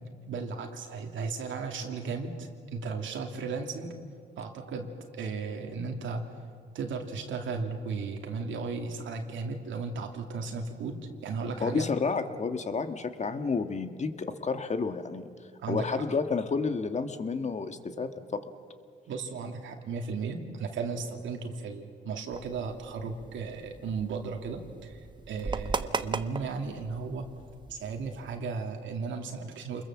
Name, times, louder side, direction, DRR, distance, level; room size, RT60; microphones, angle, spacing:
voice 1, 0.3-4.0 4.4-6.3 6.7-11.9 15.6-16.1 19.1-25.0 25.3-27.2 27.7-29.8, right 4 dB, 75° right, 3 dB, 2.6 m, -35 dB
voice 2, 11.6-15.3 15.7-18.4, left 4 dB, 35° left, 8 dB, 1.7 m, -30 dB
sound 1, 22.3-28.4, right 4 dB, 25° right, 1.1 m, -38 dB
28.0 x 21.5 x 7.4 m, 2.2 s
cardioid pair, 90°, 20 cm